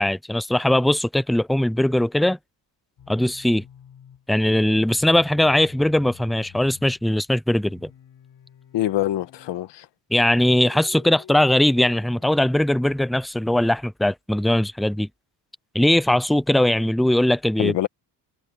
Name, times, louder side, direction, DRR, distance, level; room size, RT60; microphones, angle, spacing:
voice 1, 0.0-2.4 3.1-3.6 4.3-7.9 10.1-15.1 15.7-17.7, left 1 dB, ahead, 0.3 m, -20 dB
sound 1, 3.0-4.3 5.0-7.1 7.7-9.7 10.4-12.4, left 9 dB, 55° left, 4.3 m, -48 dB
voice 2, 8.7-9.9 17.6-17.9, left 13 dB, 85° left, 1.4 m, -24 dB
cardioid pair, 150°, 42 cm